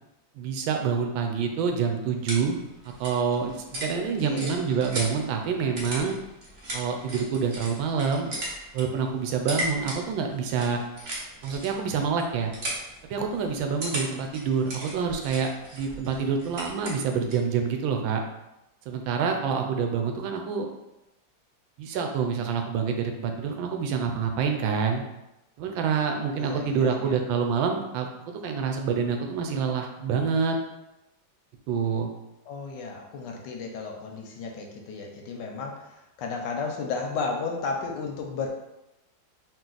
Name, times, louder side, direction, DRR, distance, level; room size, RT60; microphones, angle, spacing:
voice 1, 0.4-2.6 2.8-3.5 3.8-6.2 6.7-8.3 8.7-10.8 11.4-12.5 13.1-18.2 18.9-20.7 21.8-25.0 25.6-28.1 28.4-30.6 31.7-32.1, right 6 dB, 90° right, 4 dB, 1.4 m, -27 dB
sound 1, 2.0-17.5, right 1 dB, 45° right, 0.9 m, -38 dB
voice 2, 3.7-4.5 26.3-27.2 32.5-38.5, left 4 dB, 75° left, 2 dB, 1.1 m, -34 dB
4.1 x 2.5 x 3.8 m, 0.93 s
omnidirectional pair, 2.1 m